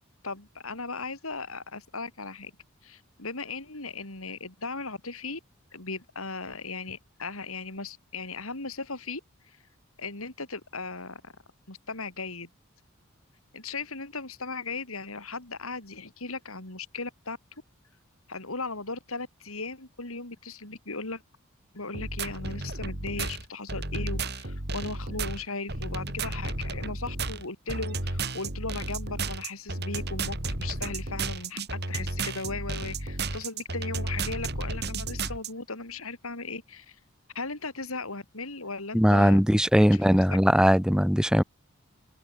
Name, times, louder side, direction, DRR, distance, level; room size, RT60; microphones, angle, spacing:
voice 1, 0.2-2.5 2.8-5.4 5.7-9.6 10.0-11.3 11.7-12.5 13.5-17.4 18.3-21.2 21.7-37.0 37.4-39.4 39.8-40.2, left 3 dB, 85° left, 5.3 m, -37 dB
sound 1, 21.9-35.5, right 3 dB, 50° right, 5.4 m, -33 dB
voice 2, 38.9-41.4, equal, 5° right, 1.8 m, -20 dB
head